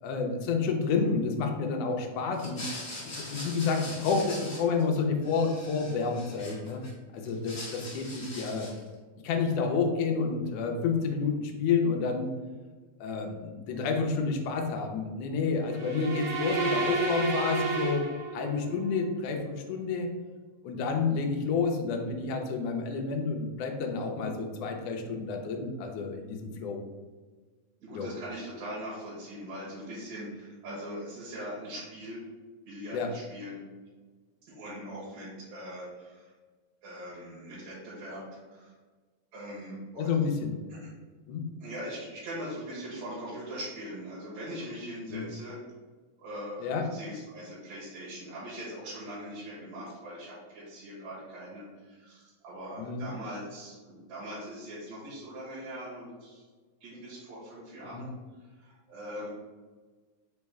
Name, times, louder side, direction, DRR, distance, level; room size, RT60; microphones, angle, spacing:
voice 1, 0.0-2.7 3.0-6.8 7.1-8.7 9.2-12.3 13.0-18.1 18.3-20.1 20.6-26.8 27.9-28.1 32.9-33.1 40.0-40.8 41.3-41.5 45.1-45.2 46.6-46.8 52.8-53.1 57.8-58.0, left 5 dB, 75° left, 2 dB, 1.5 m, -30 dB
sound 1, 2.3-5.0 5.2-6.9 7.2-8.9, left 1 dB, 45° left, 0.9 m, -42 dB
sound 2, 15.7-18.7, right 3 dB, 85° right, 2.3 m, -30 dB
voice 2, 27.8-32.2 32.7-33.6 34.5-36.3 36.8-38.7 39.3-40.3 40.8-40.9 41.6-45.6 46.2-56.4 56.8-58.1 58.6-59.3, equal, 65° right, -8 dB, 2.3 m, -41 dB
5.4 x 2.1 x 4.6 m, 1.4 s
omnidirectional pair, 3.4 m